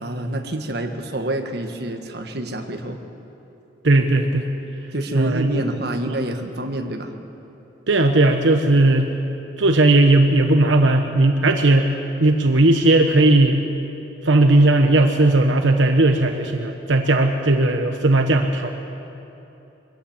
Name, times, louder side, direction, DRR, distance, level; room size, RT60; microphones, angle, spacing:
voice 1, 0.0-3.0 4.9-7.1 8.7-8.9, right 1 dB, 55° right, 4 dB, 1.5 m, -27 dB
voice 2, 3.8-4.5 5.1-5.6 6.1-6.2 7.9-9.0 9.6-11.9 12.2-13.6 14.2-18.7, right 2 dB, 80° right, 4 dB, 1.1 m, -16 dB
23.5 x 17.0 x 7.3 m, 2.9 s
head